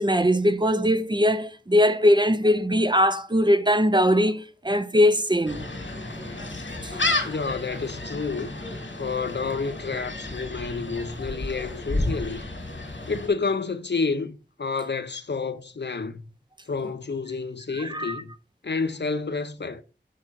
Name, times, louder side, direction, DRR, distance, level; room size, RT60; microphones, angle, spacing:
voice 1, 0.0-5.7 6.8-6.9 17.7-18.2, equal, 25° right, 0.6 m, -21 dB
Gull seagull, 5.5-13.3, left 2 dB, 90° left, 2.2 m, -31 dB
voice 2, 7.2-8.5 9.0-12.4 13.1-16.2 16.7-18.3 18.6-19.8, left 4 dB, 65° left, 0.7 m, -29 dB
6.5 x 5.8 x 4.1 m
wide cardioid pair, 50°, 19 cm